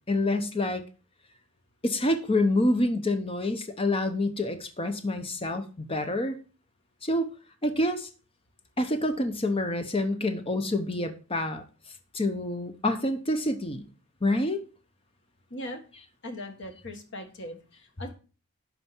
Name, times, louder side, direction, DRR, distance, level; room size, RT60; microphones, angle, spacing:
voice 1, 0.1-0.8 1.8-6.4 7.0-7.3 7.6-8.1 8.8-11.6 12.1-13.9 14.2-14.6, left 1 dB, 25° left, 7 dB, 0.9 m, -27 dB
voice 2, 15.5-15.8 16.2-18.1, left 1 dB, 55° left, 5 dB, 1.7 m, -39 dB
11.0 x 4.3 x 6.0 m, 0.36 s
head